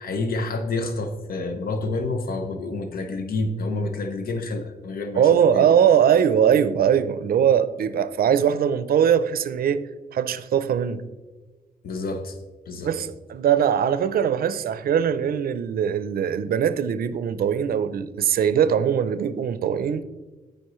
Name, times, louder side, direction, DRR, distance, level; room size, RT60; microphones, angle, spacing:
voice 1, 0.0-5.7 11.8-12.4 12.7-12.9, left 2 dB, 70° left, 0.7 m, -28 dB
voice 2, 5.2-9.8 10.1-11.0 12.8-20.0, right 8 dB, 70° right, 0.5 m, -21 dB
13.0 x 5.1 x 3.1 m
wide cardioid pair, 135°, 16 cm